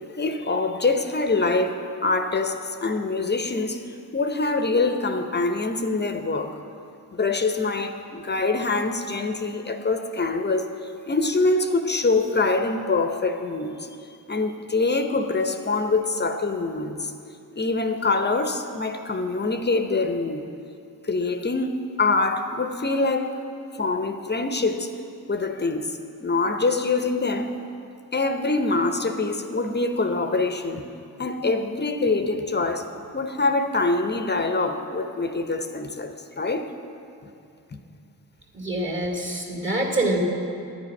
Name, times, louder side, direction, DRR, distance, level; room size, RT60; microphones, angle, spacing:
voice 1, 0.1-6.6 7.1-10.7 11.1-13.9 14.3-17.1 17.6-20.4 21.0-23.4 23.8-24.9 25.3-27.6 28.1-30.9 31.2-32.9 33.1-36.7, left 3 dB, 25° left, 7 dB, 0.7 m, -24 dB
voice 2, 38.5-40.2, right 2 dB, 30° right, -1 dB, 2.1 m, -25 dB
10.0 x 9.1 x 5.3 m, 2.6 s
cardioid pair, 80°, 38 cm